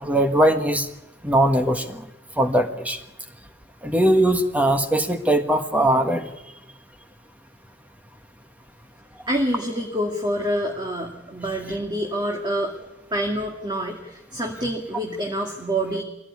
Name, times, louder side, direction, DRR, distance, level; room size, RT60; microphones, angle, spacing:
voice 1, 0.0-0.9 1.2-2.0 2.4-3.0 3.8-6.3, right 1 dB, 10° right, 6 dB, 1.5 m, -20 dB
voice 2, 9.3-12.7 13.1-16.0, equal, 25° right, 1 dB, 2.3 m, -27 dB
22.5 x 16.5 x 9.7 m, 0.93 s
head